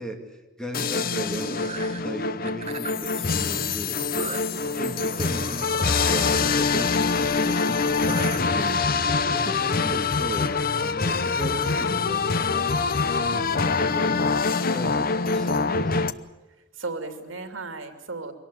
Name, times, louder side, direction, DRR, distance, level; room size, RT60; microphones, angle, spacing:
voice 1, 0.0-4.3 4.7-9.0 9.3-12.9 13.3-16.0, equal, 5° left, 3 dB, 2.4 m, -36 dB
sound 1, 0.7-16.1, left 4 dB, 45° left, 0.8 m, -24 dB
sound 2, 1.2-2.0 2.5-3.1 4.2-6.7 8.0-8.4, right 4 dB, 30° right, 1.2 m, -37 dB
voice 2, 3.3-3.9 6.6-6.8 16.8-18.3, right 3 dB, 80° right, 7 dB, 2.8 m, -37 dB
23.5 x 18.0 x 9.7 m, 1.1 s
head